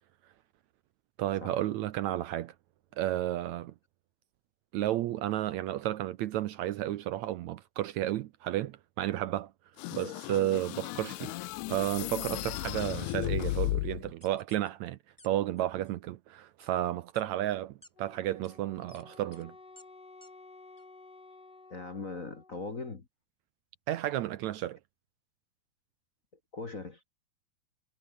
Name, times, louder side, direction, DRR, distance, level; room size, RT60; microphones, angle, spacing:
voice 1, 1.2-2.5 3.0-3.7 4.7-9.5 9.9-11.3 11.7-15.0 15.2-19.5 23.9-24.8, right 13 dB, 75° right, 1.9 m, -32 dB
sound 1, 9.8-14.1, left 18 dB, 80° left, 2.1 m, -35 dB
sound 2, 14.2-14.7 15.2-15.3 15.6-15.9 16.6-16.7 17.1-17.2 17.8-17.9 18.4-18.5 18.9-19.0 19.3-19.4 19.8-19.9 20.2-20.3 20.8-20.9, left 1 dB, 5° left, 5.5 m, -57 dB
Wind instrument woodwind instrument, 18.0-22.8, left 3 dB, 45° left, 7.7 m, -54 dB
voice 2, 21.7-23.1 26.5-27.1, left 3 dB, 30° left, 1.6 m, -40 dB
omnidirectional pair, 3.7 m